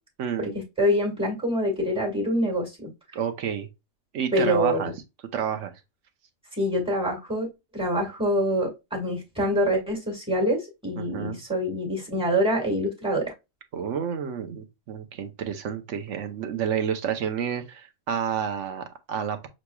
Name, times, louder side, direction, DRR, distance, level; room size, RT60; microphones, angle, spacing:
voice 1, 0.2-0.6 3.1-3.7 4.1-4.9 5.3-5.7 11.0-11.4 13.7-19.5, right 8 dB, 65° right, 1.1 m, -30 dB
voice 2, 0.8-2.9 4.3-4.9 6.6-13.3, equal, 5° right, 1.7 m, -25 dB
6.5 x 3.0 x 2.3 m
omnidirectional pair, 1.4 m